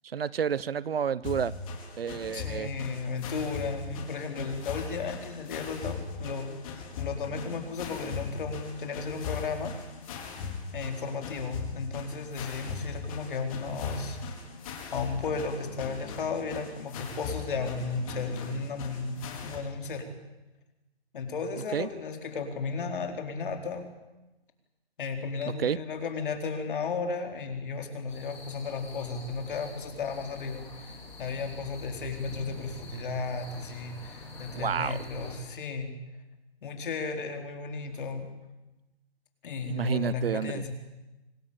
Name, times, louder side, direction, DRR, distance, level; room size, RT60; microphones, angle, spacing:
voice 1, 0.1-1.5 2.0-2.7 21.7-21.9 25.6-25.8 34.5-35.0 39.7-40.6, right 7 dB, 60° right, 20 dB, 0.8 m, -30 dB
sound 1, 1.2-19.6, left 5 dB, 30° left, 4.7 m, -39 dB
voice 2, 2.3-6.6 6.9-9.7 10.7-14.2 14.9-20.1 21.1-23.9 25.0-35.9 36.6-38.3 39.4-40.7, left 4 dB, 50° left, 5 dB, 4.4 m, -34 dB
sound 2, 28.1-35.3, left 3 dB, 10° left, 6.3 m, -45 dB
25.5 x 19.0 x 8.8 m, 1.0 s
hypercardioid pair, 150°, 32 cm